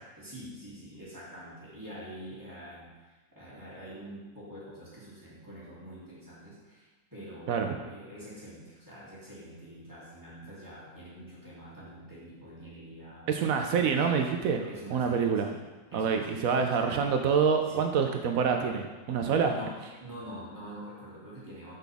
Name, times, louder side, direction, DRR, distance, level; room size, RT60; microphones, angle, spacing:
voice 1, 0.2-14.1 14.6-15.6 15.9-17.0 17.6-17.9 19.4-21.7, equal, 15° right, -9 dB, 2.3 m, -46 dB
voice 2, 13.3-14.7 14.9-15.5 15.9-19.5, right 6 dB, 70° right, 4 dB, 0.9 m, -26 dB
6.7 x 6.0 x 3.5 m, 1.2 s
omnidirectional pair, 1.6 m